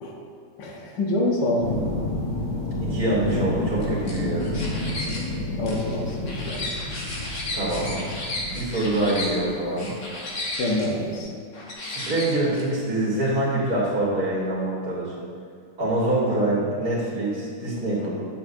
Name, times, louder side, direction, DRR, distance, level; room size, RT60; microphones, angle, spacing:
voice 1, 0.6-1.9 5.6-6.8 10.6-11.3, left 1 dB, 80° left, -2 dB, 1.6 m, -26 dB
sound 1, 1.6-9.8 11.2-11.3, left 2 dB, 30° left, 0.7 m, -30 dB
voice 2, 2.8-4.5 7.5-8.0 8.5-9.9 11.8-15.1 15.8-18.1, right 1 dB, 70° right, -8 dB, 2.3 m, -25 dB
sound 2, 3.8-5.2 5.7-9.3 9.8-10.9 11.5-12.6, left 2 dB, 60° left, 1.7 m, -33 dB
9.0 x 7.2 x 2.7 m, 2.2 s
omnidirectional pair, 1.8 m